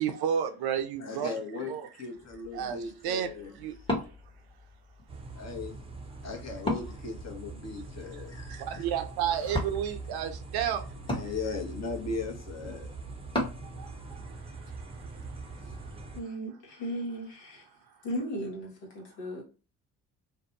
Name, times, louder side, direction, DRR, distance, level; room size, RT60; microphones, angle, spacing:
voice 1, 0.0-1.3 1.7-1.9 2.5-2.8 3.0-3.8 8.5-10.9 13.8-14.2, right 8 dB, 55° right, 0.6 m, -31 dB
voice 2, 1.0-3.9 5.4-5.8 6.2-8.9 11.1-12.9, left 4 dB, 35° left, 0.9 m, -38 dB
Wood, 2.2-13.7, left 1 dB, 10° left, 1.0 m, -39 dB
sound 1, 5.1-16.2, right 3 dB, 15° right, 0.7 m, -43 dB
voice 3, 16.1-17.6 18.0-18.7 18.9-19.4, equal, 70° left, 1.1 m, -36 dB
2.6 x 2.2 x 2.6 m
hypercardioid pair, 50°, 46 cm